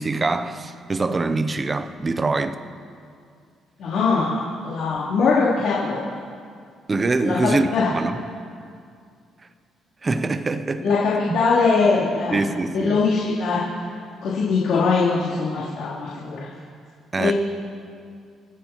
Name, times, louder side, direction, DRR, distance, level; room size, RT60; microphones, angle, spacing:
voice 1, 0.0-2.6 6.9-8.4 10.0-10.9 11.3-11.4 12.3-13.1 17.1-17.3, right 3 dB, 20° right, 0.6 m, -24 dB
voice 2, 3.8-6.0 7.2-7.3 7.7-7.9 10.8-12.4 12.7-13.6 14.2-16.5 17.2-17.3, left 4 dB, 75° left, 3.3 m, -21 dB
29.5 x 14.5 x 3.0 m
cardioid pair, 155°, 0 cm